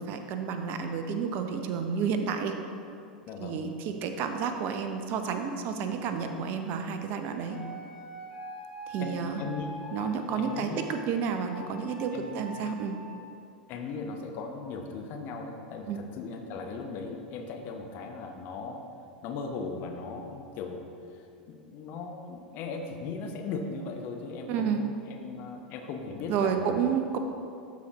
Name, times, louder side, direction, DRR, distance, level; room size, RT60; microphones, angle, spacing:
voice 1, 0.0-2.6 3.4-7.6 8.9-9.4 9.9-12.9 15.9-16.0 24.5-24.8 26.3-27.2, right 6 dB, 40° right, 6 dB, 0.6 m, -30 dB
voice 2, 3.3-3.6 9.0-9.7 10.4-10.9 12.1-12.6 13.7-18.8 19.2-20.9 21.1-26.8, left 4 dB, 40° left, 3 dB, 0.7 m, -38 dB
sound 1, 7.5-10.7 11.5-13.0, equal, 70° left, 1.4 m, -44 dB
12.0 x 4.1 x 2.9 m, 2.5 s
figure-of-eight pair, 85°, 5 cm